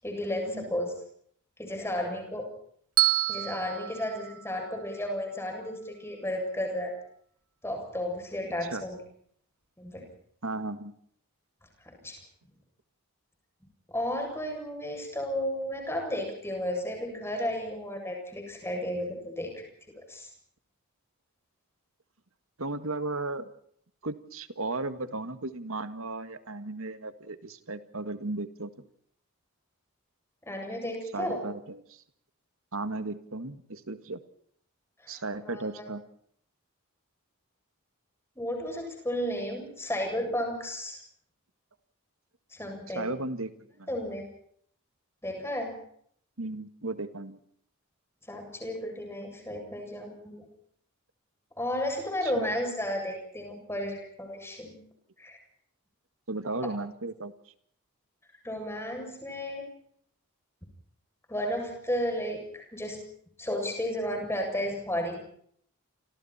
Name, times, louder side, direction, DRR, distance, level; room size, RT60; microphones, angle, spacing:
voice 1, 0.0-0.9 1.6-2.5 3.3-6.9 7.6-9.0 9.8-10.1 12.0-12.2 13.9-19.7 20.1-20.3 30.5-31.5 35.0-35.8 38.4-41.0 42.5-43.1 43.9-44.2 45.2-45.8 48.3-50.5 51.6-54.8 55.2-55.4 58.4-59.7 61.3-63.0 63.4-65.2, left 1 dB, 10° left, 3 dB, 7.5 m, -33 dB
Bell, 3.0-5.2, right 12 dB, 85° right, 1.9 m, -29 dB
voice 2, 10.4-10.9 22.6-23.5 24.0-28.7 31.1-32.0 32.7-34.2 35.1-36.0 43.0-43.9 46.4-47.4 52.2-52.5 56.3-57.3, right 2 dB, 70° right, 11 dB, 1.9 m, -35 dB
29.5 x 26.5 x 4.4 m, 0.64 s
head